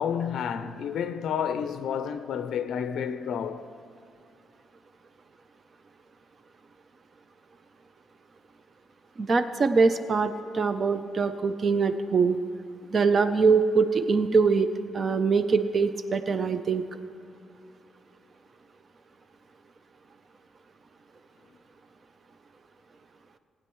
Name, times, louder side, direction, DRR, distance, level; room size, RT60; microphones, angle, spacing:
voice 1, 0.0-3.7, left 8 dB, 70° left, 0.4 m, -30 dB
voice 2, 9.2-12.4 12.9-14.7 14.9-16.8, right 4 dB, 40° right, 0.5 m, -23 dB
19.0 x 9.0 x 3.1 m
cardioid pair, 115°, 0 cm